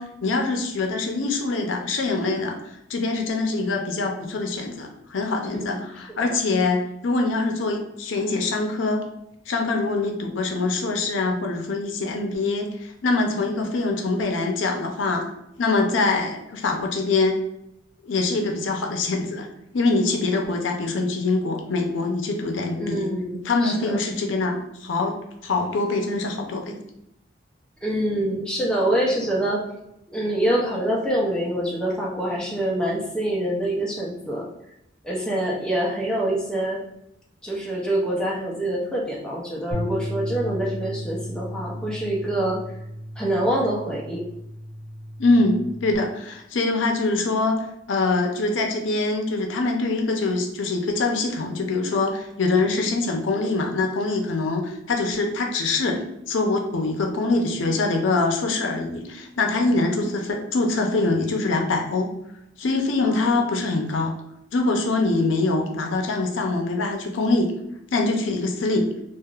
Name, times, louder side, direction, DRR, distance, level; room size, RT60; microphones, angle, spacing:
voice 1, 0.0-9.0 9.5-15.2 15.6-17.4 18.0-19.5 19.7-23.1 23.4-25.2 25.4-26.8 45.2-62.1 62.6-64.1 64.5-67.5 67.9-68.9, left 3 dB, 80° left, 2 dB, 0.6 m, -24 dB
voice 2, 22.8-24.0 27.8-29.6 30.1-34.5 35.0-36.8 37.4-42.6 43.2-44.2 63.0-63.4, right 1 dB, 5° left, -3 dB, 0.5 m, -25 dB
sound 1, 39.7-46.0, equal, 45° right, 1.0 m, -34 dB
3.4 x 2.4 x 2.3 m, 0.81 s
head